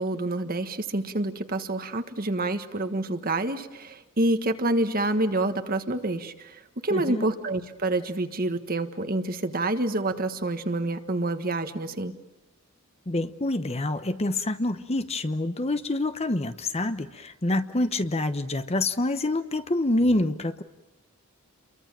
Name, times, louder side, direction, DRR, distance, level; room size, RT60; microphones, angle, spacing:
voice 1, 0.0-12.1, right 2 dB, 45° right, 8 dB, 1.5 m, -27 dB
voice 2, 6.9-7.2 13.1-20.6, left 2 dB, 30° left, 10 dB, 1.0 m, -26 dB
29.5 x 23.5 x 7.5 m, 1.0 s
head